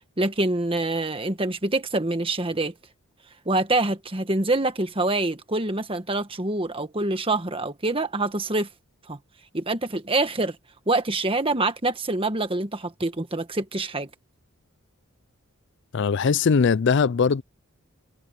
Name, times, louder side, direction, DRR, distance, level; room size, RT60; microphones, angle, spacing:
voice 1, 0.2-2.7 3.4-8.7 9.1-9.2 9.5-10.6 10.9-14.1, right 2 dB, 25° right, 1.5 m, -25 dB
voice 2, 15.9-17.4, left 5 dB, 55° left, 0.4 m, -20 dB
head